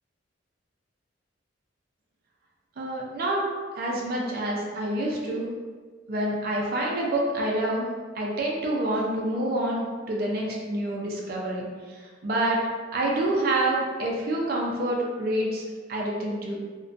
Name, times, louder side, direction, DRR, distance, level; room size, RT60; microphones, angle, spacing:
voice 1, 2.8-3.4 3.8-5.5 6.1-7.9 8.2-12.6 12.9-15.6 15.9-16.6, right 1 dB, 50° right, -3 dB, 0.4 m, -27 dB
2.5 x 2.2 x 2.4 m, 1.5 s
head